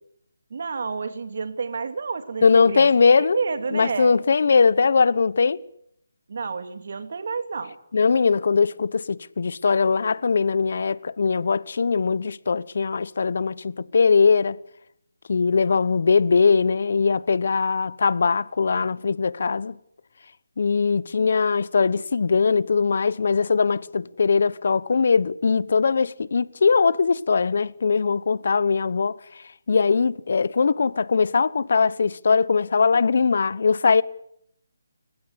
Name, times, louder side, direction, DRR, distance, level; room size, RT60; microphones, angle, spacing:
voice 1, 0.5-4.2 6.3-7.8, right 5 dB, 55° right, 2.6 m, -30 dB
voice 2, 2.4-3.4 3.7-5.6 7.9-14.6 15.3-19.8 20.6-29.2 29.7-34.0, left 5 dB, 55° left, 1.0 m, -20 dB
29.5 x 16.5 x 8.3 m
hypercardioid pair, 165°, 0 cm